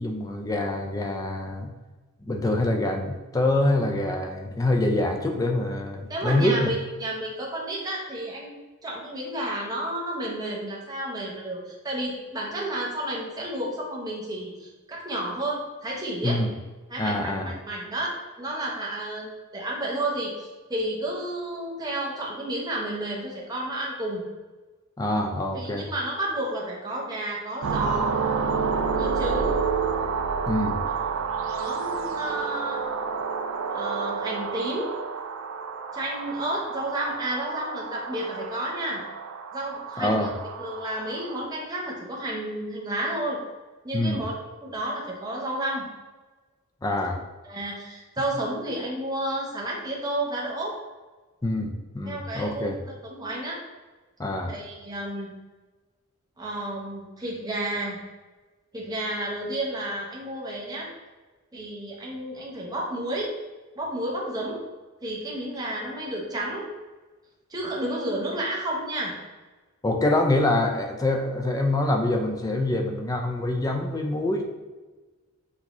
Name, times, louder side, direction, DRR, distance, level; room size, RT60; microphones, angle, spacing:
voice 1, 0.0-1.7 2.2-6.7 16.2-16.5 17.0-17.5 25.0-25.9 30.5-30.8 40.0-40.3 43.9-44.2 46.8-47.2 51.4-52.8 54.2-54.5 69.8-74.4, left 1 dB, 15° left, 2 dB, 0.4 m, -25 dB
voice 2, 6.1-8.5 8.8-16.4 16.9-24.2 25.5-28.2 29.0-29.6 30.9-31.0 31.5-32.8 33.7-34.9 35.9-39.0 39.5-40.3 40.6-43.4 43.8-44.3 44.6-45.8 47.4-50.8 52.1-53.6 54.5-55.3 56.4-58.0 58.7-60.9 61.5-63.3 63.8-64.6 65.0-66.7 67.5-69.1, right 1 dB, 20° right, -3 dB, 0.7 m, -31 dB
sound 1, 27.6-41.5, right 5 dB, 65° right, 0.4 m, -29 dB
5.9 x 2.8 x 2.9 m, 1.3 s
head